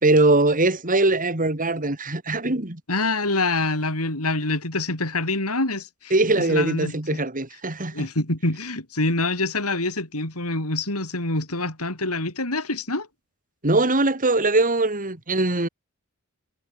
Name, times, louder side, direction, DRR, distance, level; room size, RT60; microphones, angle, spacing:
voice 1, 0.0-2.8 6.1-8.1 13.6-15.7, right 2 dB, 40° right, 3.7 m, -21 dB
voice 2, 2.9-7.2 7.9-13.1, left 2 dB, 85° left, 7.5 m, -26 dB
head